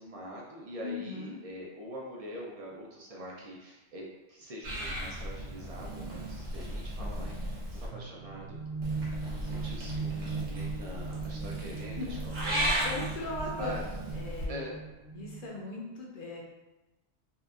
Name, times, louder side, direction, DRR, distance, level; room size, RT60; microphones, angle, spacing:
voice 1, 0.0-9.1 9.4-13.3 13.6-13.8 14.5-14.7, equal, 55° right, -3 dB, 0.4 m, -44 dB
voice 2, 0.8-1.4 12.0-12.1 12.8-13.7 14.1-14.7 15.1-16.4, left 2 dB, 60° left, -3 dB, 0.7 m, -38 dB
Purr / Meow, 4.6-7.9 8.8-14.5, equal, 85° right, 1.0 m, -36 dB
sound 1, 7.9-15.6, right 4 dB, 40° right, 0.9 m, -39 dB
2.8 x 2.3 x 2.3 m, 1.1 s
omnidirectional pair, 1.1 m